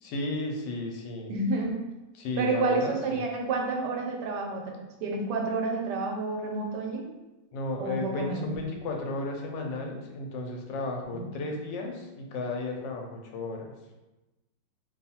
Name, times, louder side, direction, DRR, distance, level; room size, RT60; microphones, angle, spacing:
voice 1, 0.0-1.3 2.1-3.2 7.5-13.7, left 2 dB, 85° left, 1 dB, 1.3 m, -34 dB
voice 2, 1.3-1.8 2.4-7.1 7.8-8.5 11.1-11.3, right 3 dB, 75° right, 1 dB, 1.2 m, -30 dB
2.9 x 2.4 x 4.1 m, 1.0 s
omnidirectional pair, 1.9 m